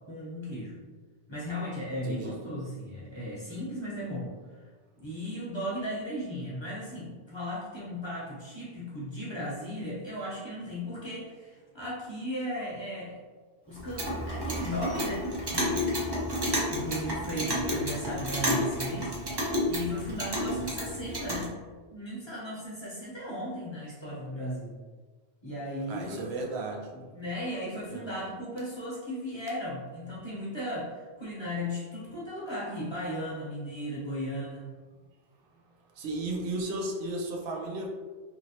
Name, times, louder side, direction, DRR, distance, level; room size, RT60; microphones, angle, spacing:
voice 1, 0.1-0.8 1.3-4.6 5.0-13.2 13.7-15.9 16.7-21.5 21.9-24.7 25.4-26.2 26.9-34.7, equal, 30° left, -7 dB, 0.7 m, -36 dB
voice 2, 2.0-2.4 20.4-20.6 25.9-26.9 27.8-28.3 35.9-37.9, right 2 dB, 80° right, 0 dB, 0.8 m, -35 dB
Clock, 13.7-21.5, equal, 30° right, 0.5 m, -31 dB
2.9 x 2.8 x 2.7 m, 1.4 s
omnidirectional pair, 1.1 m